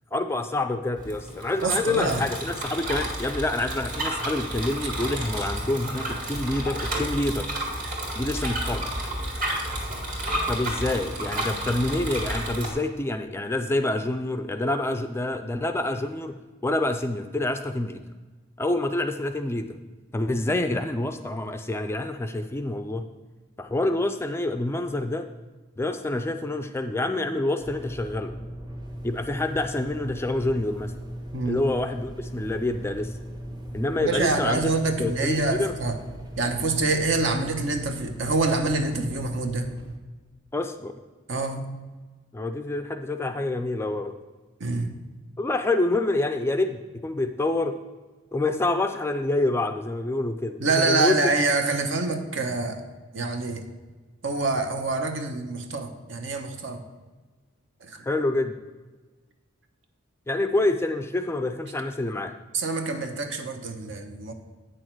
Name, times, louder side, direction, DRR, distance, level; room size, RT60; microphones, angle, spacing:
voice 1, 0.1-7.5 8.2-8.9 10.5-16.4 16.6-18.0 18.6-19.8 20.1-23.1 23.6-25.3 25.8-28.3 29.0-30.9 31.5-33.1 33.7-34.7 35.0-35.7 40.5-40.9 42.3-44.1 45.4-47.8 48.3-51.2 58.0-58.5 60.3-62.3, left 2 dB, 10° left, 7 dB, 0.3 m, -27 dB
Bicycle, 1.0-12.7, right 1 dB, 40° right, 1.9 m, -31 dB
voice 2, 1.6-2.2 31.3-31.8 33.9-36.0 36.4-39.7 41.3-41.6 44.6-45.0 50.6-52.8 53.1-53.6 54.2-56.8 57.8-58.0 62.5-64.3, right 3 dB, 65° right, 6 dB, 1.0 m, -26 dB
sound 1, 27.6-40.0, equal, 20° right, 0.9 m, -38 dB
8.9 x 6.4 x 4.5 m, 1.3 s
head